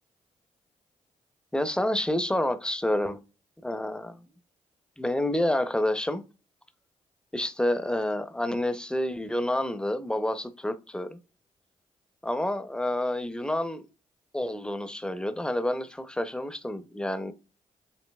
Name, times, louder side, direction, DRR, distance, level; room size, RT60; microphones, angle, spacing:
voice 1, 1.5-3.2 3.6-4.2 5.0-6.2 7.3-11.2 12.2-13.8 14.3-17.3, left 1 dB, 5° left, 0.6 m, -28 dB
7.2 x 2.8 x 2.3 m
cardioid pair, 65°, 14 cm